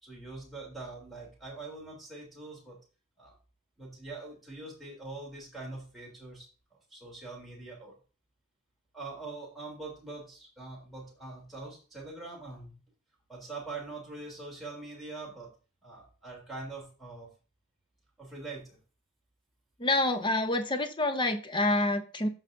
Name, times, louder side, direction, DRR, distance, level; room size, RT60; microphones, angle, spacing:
voice 1, 0.0-2.8 3.2-3.3 3.8-6.5 6.9-7.9 8.9-12.8 13.3-15.5 15.8-17.3 18.2-18.8, right 3 dB, ahead, -2 dB, 3.1 m, -43 dB
voice 2, 19.8-22.3, left 2 dB, 20° left, 8 dB, 0.7 m, -27 dB
14.0 x 4.9 x 2.6 m, 0.36 s
head